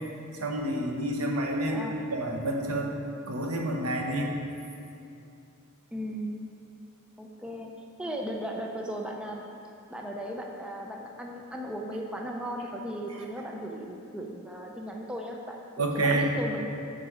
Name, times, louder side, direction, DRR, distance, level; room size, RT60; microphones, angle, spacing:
voice 1, 0.3-2.9 3.3-4.4 15.8-16.3, right 1 dB, 85° right, 1 dB, 1.0 m, -29 dB
voice 2, 1.7-2.0 5.9-6.4 7.2-7.7 8.0-9.4 9.9-16.6, equal, 5° right, 0 dB, 0.5 m, -36 dB
9.0 x 5.0 x 5.0 m, 2.6 s
head